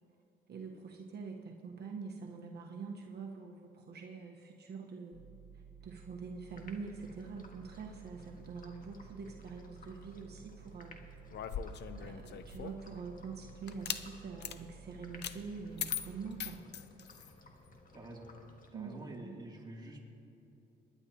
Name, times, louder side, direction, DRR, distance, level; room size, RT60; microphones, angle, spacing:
voice 1, 0.5-5.2 5.5-11.0 11.3-11.5 11.9-16.6 18.7-19.4, right 5 dB, 55° right, 0 dB, 1.2 m, -45 dB
sound 1, 5.1-16.6, right 8 dB, 85° right, 1.0 m, -55 dB
sound 2, 6.5-19.2, left 2 dB, 45° left, 1.7 m, -58 dB
sound 3, 11.3-12.9 13.7-14.0 14.4-14.6 15.2-15.4 15.8-17.3, left 8 dB, 60° left, 0.7 m, -40 dB
voice 2, 17.9-18.3 18.7-20.0, right 2 dB, 20° right, -2 dB, 2.8 m, -47 dB
25.5 x 11.0 x 2.9 m, 2.8 s
cardioid pair, 90°, 20 cm